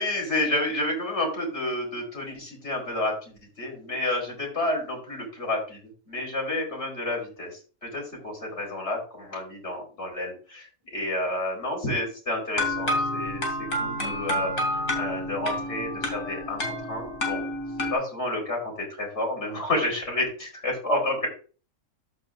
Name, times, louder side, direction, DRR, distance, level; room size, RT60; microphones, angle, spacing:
voice 1, 0.0-5.8 6.1-17.5 17.9-21.3, left 1 dB, 55° left, 0 dB, 4.9 m, -30 dB
sound 1, 12.6-17.9, left 1 dB, 70° left, 3.1 m, -29 dB
14.0 x 5.8 x 2.6 m, 0.38 s
omnidirectional pair, 1.4 m